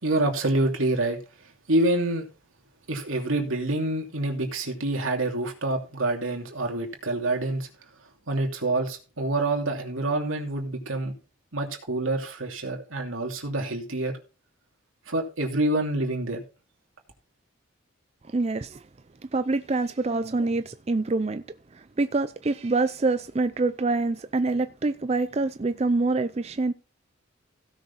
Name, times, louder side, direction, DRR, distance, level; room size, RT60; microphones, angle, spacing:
voice 1, 0.0-1.2 1.7-2.3 2.9-7.7 8.3-11.1 11.5-14.1 15.1-16.4, right 2 dB, 80° right, 2.8 m, -27 dB
voice 2, 18.3-18.8 19.3-21.4 21.7-26.7, right 3 dB, 30° right, 0.4 m, -26 dB
16.5 x 6.5 x 4.1 m
head